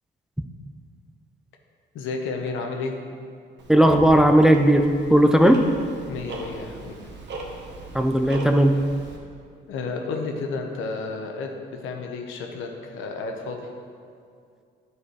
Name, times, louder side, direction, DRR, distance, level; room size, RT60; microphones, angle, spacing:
voice 1, 1.9-2.9 6.1-7.0 9.7-11.5 11.8-13.7, left 4 dB, 85° left, 3 dB, 1.0 m, -31 dB
Tick-tock, 3.6-9.2, right 2 dB, 60° right, 1.3 m, -38 dB
voice 2, 3.7-5.7 7.9-8.8, right 1 dB, 5° right, 6 dB, 0.5 m, -16 dB
10.0 x 4.8 x 4.8 m, 2.3 s
cardioid pair, 90°, 20 cm